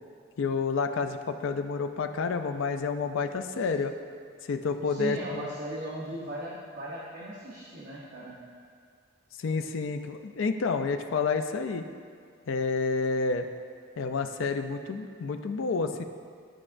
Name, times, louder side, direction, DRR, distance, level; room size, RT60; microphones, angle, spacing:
voice 1, 0.4-3.9 4.5-5.5 9.4-11.9 12.5-13.5 14.0-16.0, left 4 dB, 70° left, 7 dB, 0.4 m, -29 dB
voice 2, 4.9-8.4, right 1 dB, 50° right, -7 dB, 0.9 m, -37 dB
12.0 x 4.8 x 2.5 m, 2.1 s
head